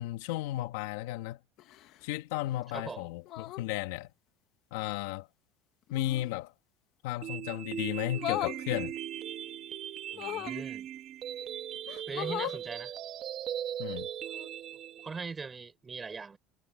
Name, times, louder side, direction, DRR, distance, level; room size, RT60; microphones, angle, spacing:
voice 1, 0.0-1.4 2.0-4.1 4.7-5.3 5.9-6.5 7.0-8.9 13.8-14.1, left 15 dB, 80° left, 1.9 m, -34 dB
sound 1, 1.6-2.1 3.2-3.7 5.9-6.3 8.1-8.6 10.1-10.6 11.4-11.5 11.9-12.6 14.3-14.5, left 14 dB, 40° left, 0.8 m, -37 dB
voice 2, 2.7-3.1 10.1-10.9 12.1-12.9 15.0-16.4, right 5 dB, 15° right, 3.8 m, -41 dB
sound 2, 7.2-15.2, right 10 dB, 30° right, 1.4 m, -39 dB
cardioid pair, 180°, 0 cm